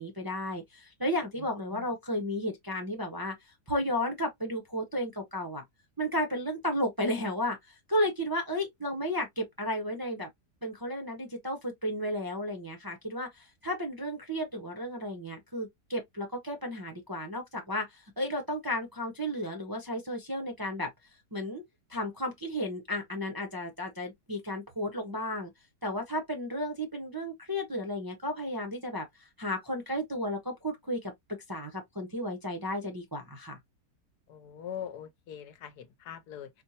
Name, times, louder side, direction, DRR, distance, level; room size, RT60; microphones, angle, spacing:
voice 1, 0.0-3.3 3.7-5.6 6.0-10.3 10.6-20.9 21.3-21.6 21.9-25.5 25.8-29.1 29.4-31.1 31.5-33.6, left 1 dB, 20° right, 0.6 m, -33 dB
voice 2, 34.3-36.5, left 9 dB, 80° left, 1.3 m, -42 dB
4.4 x 2.1 x 2.7 m
omnidirectional pair, 1.7 m